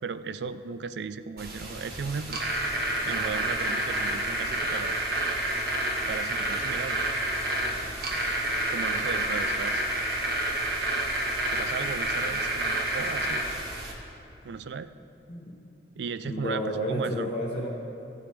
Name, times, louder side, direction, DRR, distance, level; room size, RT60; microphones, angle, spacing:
voice 1, 0.0-2.4 3.1-5.0 6.0-7.0 8.7-9.8 11.5-13.4 14.4-14.9 16.0-17.3, right 5 dB, 75° right, 13 dB, 0.4 m, -36 dB
sound 1, 1.4-13.9, right 1 dB, 55° right, 1.4 m, -29 dB
voice 2, 16.2-17.7, equal, 40° left, -4 dB, 0.9 m, -31 dB
15.0 x 8.3 x 3.4 m, 3.0 s
head